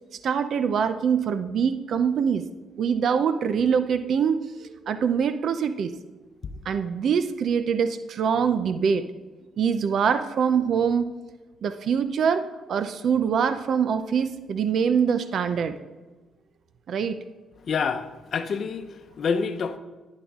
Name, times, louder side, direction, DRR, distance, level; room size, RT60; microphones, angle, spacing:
voice 1, 0.2-2.5 2.8-5.9 6.7-9.0 9.6-11.1 11.6-15.7 16.9-17.2, right 7 dB, 60° right, 10 dB, 0.6 m, -24 dB
voice 2, 17.7-19.8, left 5 dB, 55° left, 8 dB, 0.8 m, -27 dB
11.0 x 11.0 x 3.7 m, 1.2 s
cardioid pair, 90°, 0 cm